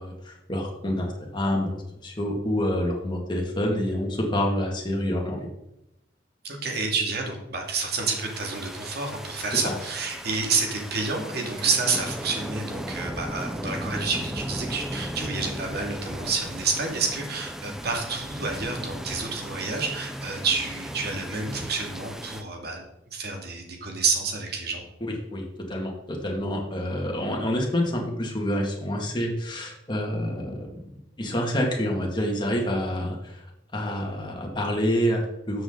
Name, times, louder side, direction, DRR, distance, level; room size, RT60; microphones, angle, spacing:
voice 1, 0.0-5.5 9.5-9.7 25.0-30.9 31.2-33.4 33.7-35.6, equal, 25° left, 0 dB, 2.2 m, -27 dB
voice 2, 6.4-22.8 23.1-24.8, right 4 dB, 60° right, 2 dB, 2.3 m, -29 dB
sound 1, 7.7-22.4, equal, 5° right, 0.7 m, -36 dB
13.0 x 7.5 x 3.9 m, 0.86 s
head